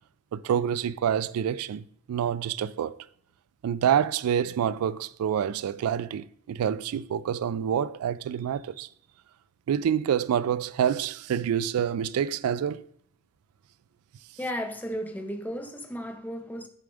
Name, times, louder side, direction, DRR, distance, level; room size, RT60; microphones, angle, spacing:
voice 1, 0.3-3.0 3.6-8.9 9.7-12.8, right 8 dB, 75° right, 0.3 m, -27 dB
voice 2, 14.4-16.7, equal, 5° left, 0.7 m, -34 dB
6.7 x 3.5 x 5.0 m
head